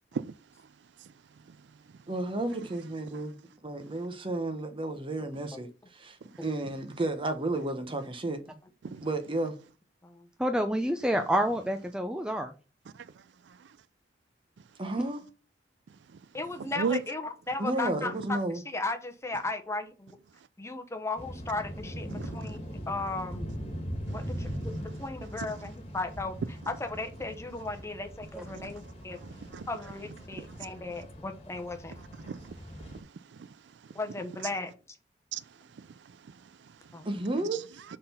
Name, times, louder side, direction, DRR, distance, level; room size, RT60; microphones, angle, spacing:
voice 1, 2.1-3.4 3.6-8.6 9.0-9.6 14.8-15.2 17.6-18.6 37.0-37.6, right 2 dB, 30° right, 1.0 m, -32 dB
voice 2, 10.4-12.5 28.3-28.4, equal, 5° right, 0.5 m, -28 dB
voice 3, 16.3-20.2 20.6-22.6 22.9-23.5 24.1-26.3 26.7-29.2 29.7-31.9 33.9-34.7 36.9-37.0, left 3 dB, 15° left, 0.9 m, -36 dB
sound 1, 21.2-33.0, equal, 35° left, 1.7 m, -41 dB
voice 4, 22.1-22.5 24.1-24.5 25.4-25.5 28.6-28.7 29.2-29.7 30.3-30.7 32.1-32.5 32.8-33.5 35.3-35.4 35.7-36.7 37.5-37.6, right 5 dB, 75° right, 0.4 m, -37 dB
6.6 x 3.8 x 5.6 m
head